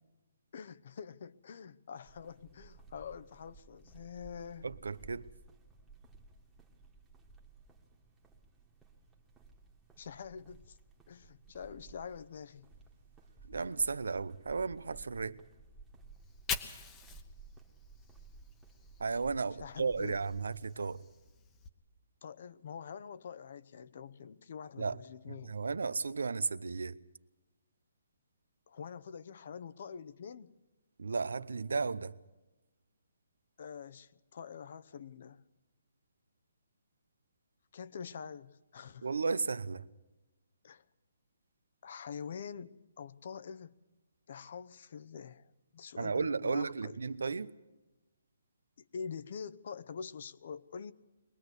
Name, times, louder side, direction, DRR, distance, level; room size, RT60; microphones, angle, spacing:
voice 1, 0.5-4.7 10.0-10.8 11.1-12.7 19.6-20.2 22.2-25.6 28.7-30.5 33.6-35.4 37.7-39.1 40.6-40.8 41.8-43.7 44.3-46.9 48.8-50.9, left 6 dB, 50° left, 0.8 m, -46 dB
sound 1, 2.0-20.7, right 4 dB, 5° right, 1.5 m, -57 dB
voice 2, 4.6-5.3 13.4-15.4 19.0-21.0 24.8-25.0 25.3-27.0 31.0-32.2 39.0-39.9 46.0-47.5, right 4 dB, 90° right, 0.8 m, -34 dB
Fire, 16.1-19.3 19.6-21.7, left 6 dB, 15° left, 1.0 m, -45 dB
22.5 x 19.0 x 8.1 m
hypercardioid pair, 165°, 0 cm